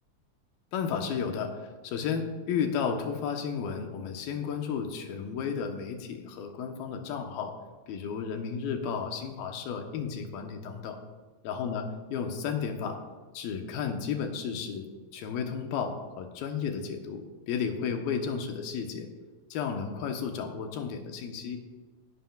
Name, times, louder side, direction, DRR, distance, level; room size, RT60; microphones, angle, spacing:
voice 1, 0.7-7.5 7.9-11.0 11.4-11.8 12.1-13.0 13.3-19.1 19.5-21.6, left 6 dB, 85° left, 4 dB, 2.9 m, -33 dB
16.5 x 11.5 x 2.4 m, 1.3 s
omnidirectional pair, 4.1 m